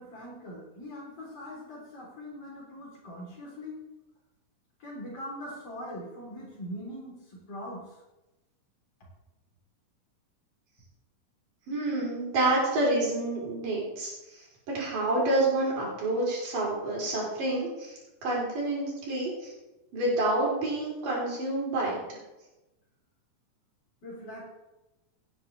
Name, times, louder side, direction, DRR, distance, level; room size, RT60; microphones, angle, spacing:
voice 1, 0.0-3.8 4.8-8.0 24.0-24.5, equal, 45° left, -4 dB, 4.8 m, -41 dB
voice 2, 11.7-14.4 14.7-19.5 19.9-22.0, right 2 dB, 85° right, -4 dB, 5.7 m, -28 dB
16.5 x 10.0 x 3.5 m, 1.0 s
omnidirectional pair, 3.7 m